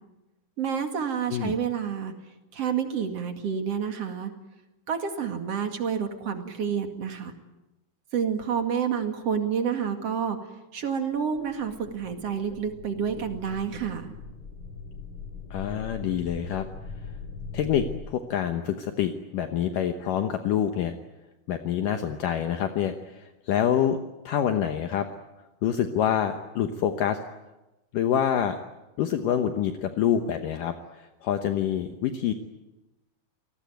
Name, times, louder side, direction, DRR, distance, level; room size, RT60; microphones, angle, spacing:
voice 1, 0.6-2.1 2.5-4.3 4.9-7.3 8.1-10.4 10.7-14.1, right 7 dB, 45° right, 6 dB, 2.7 m, -29 dB
sound 1, 11.0-11.1 11.4-18.0, left 4 dB, 35° left, 5.0 m, -41 dB
voice 2, 15.5-16.7 17.5-20.9 21.5-24.0 24.3-25.1 25.6-27.2 27.9-28.6 29.0-32.3, left 9 dB, 70° left, 6 dB, 2.5 m, -26 dB
29.0 x 19.0 x 9.3 m, 1.0 s
omnidirectional pair, 4.4 m